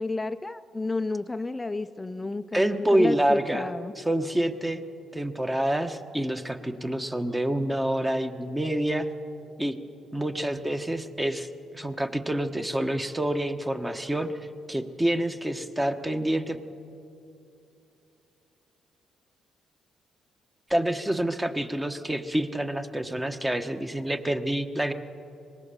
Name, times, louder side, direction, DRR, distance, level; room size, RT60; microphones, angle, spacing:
voice 1, 0.0-3.9, left 3 dB, 15° left, 10 dB, 0.5 m, -31 dB
voice 2, 2.5-3.7 4.0-4.8 5.1-9.1 9.6-9.8 10.1-11.5 11.7-14.3 14.7-16.6 20.7-24.9, right 1 dB, 10° right, 7 dB, 1.3 m, -27 dB
24.5 x 20.0 x 7.0 m, 2.7 s
cardioid pair, 90°, 0 cm